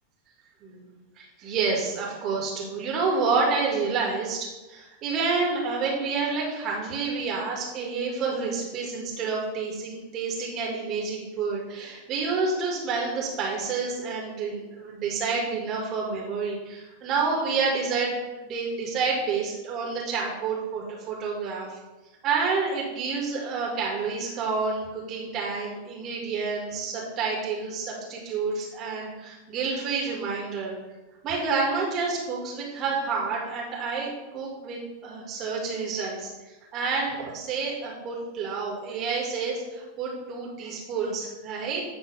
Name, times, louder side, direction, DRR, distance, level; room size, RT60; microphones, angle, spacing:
voice 1, 0.6-21.8 22.2-30.7 31.2-36.3 36.7-41.8, right 4 dB, 35° right, -2 dB, 2.5 m, -29 dB
10.5 x 3.9 x 5.6 m, 1.1 s
figure-of-eight pair, 90°, 0 cm